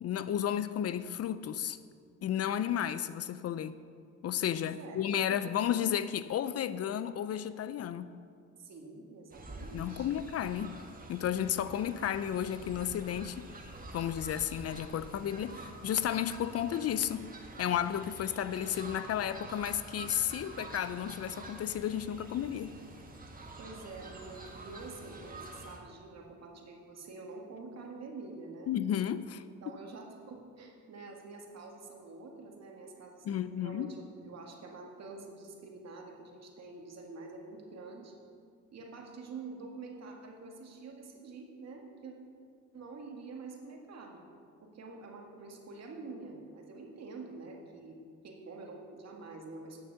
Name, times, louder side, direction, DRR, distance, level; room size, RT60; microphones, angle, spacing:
voice 1, 0.0-1.8 2.2-3.7 4.2-8.2 9.7-10.7 11.1-13.5 13.9-17.3 17.6-22.7 28.7-29.4 33.2-33.9, left 10 dB, 55° left, 0.5 m, -33 dB
voice 2, 4.6-5.0 5.3-5.5 8.6-10.1 23.6-28.7 29.6-38.1 38.7-42.1 42.7-44.3 44.6-48.0 48.2-49.8, right 3 dB, 60° right, 1.9 m, -47 dB
Fowl, 9.3-25.8, right 2 dB, 30° right, 1.5 m, -47 dB
9.5 x 6.5 x 6.9 m
cardioid pair, 90°, 30 cm